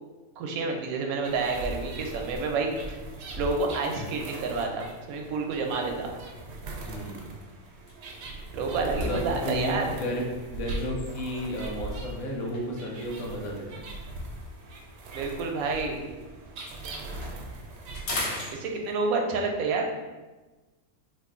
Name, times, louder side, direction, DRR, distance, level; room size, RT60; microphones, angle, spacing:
voice 1, 0.4-3.0 3.4-6.1 8.5-9.9 15.1-16.0 18.5-19.9, right 3 dB, 90° right, 2 dB, 1.0 m, -29 dB
sound 1, 1.2-18.2, right 2 dB, 65° right, 0.7 m, -39 dB
voice 2, 6.9-7.3 9.0-13.8, equal, 90° left, -1 dB, 1.2 m, -33 dB
sound 2, 7.7-11.7 12.5-16.1 16.4-19.2, left 2 dB, 60° left, 0.9 m, -41 dB
3.0 x 2.4 x 3.6 m, 1.2 s
omnidirectional pair, 1.4 m